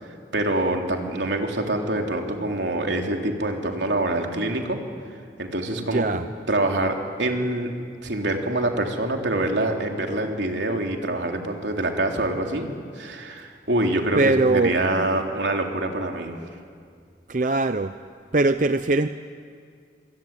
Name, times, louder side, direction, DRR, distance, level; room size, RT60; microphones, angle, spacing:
voice 1, 0.3-4.8 5.4-6.0 6.5-7.7 8.0-12.7 12.9-16.4, right 1 dB, 85° right, 2 dB, 3.4 m, -25 dB
voice 2, 5.9-6.2 14.2-14.8 17.3-17.9 18.3-19.1, right 2 dB, 45° right, 10 dB, 0.6 m, -21 dB
26.5 x 24.0 x 9.0 m, 2.2 s
head